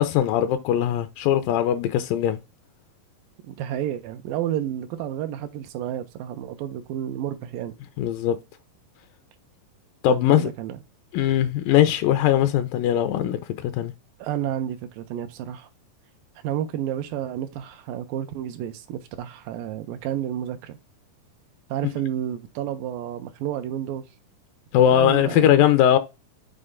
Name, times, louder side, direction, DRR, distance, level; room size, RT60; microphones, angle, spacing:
voice 1, 0.0-2.4 8.0-8.4 10.0-10.5 11.1-13.9 24.7-26.0, left 11 dB, 80° left, 2.2 m, -20 dB
voice 2, 3.4-7.7 10.1-10.8 12.3-12.4 14.2-15.7 16.4-20.8 21.7-24.0 24.9-25.7, right 11 dB, 85° right, 2.4 m, -31 dB
6.7 x 4.2 x 3.6 m
omnidirectional pair, 4.0 m